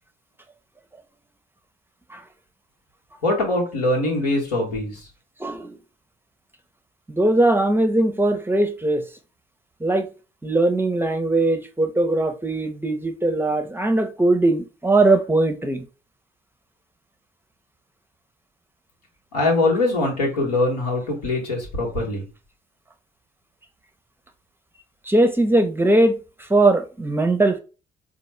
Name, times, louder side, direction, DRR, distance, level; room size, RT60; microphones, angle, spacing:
voice 1, 3.2-5.0 19.3-22.2, left 2 dB, 85° left, 1.1 m, -22 dB
voice 2, 5.4-5.8 7.1-9.0 9.8-10.1 10.4-15.8 25.1-27.6, right 2 dB, 10° right, 0.6 m, -20 dB
4.1 x 2.1 x 3.1 m
hypercardioid pair, 50°, 20 cm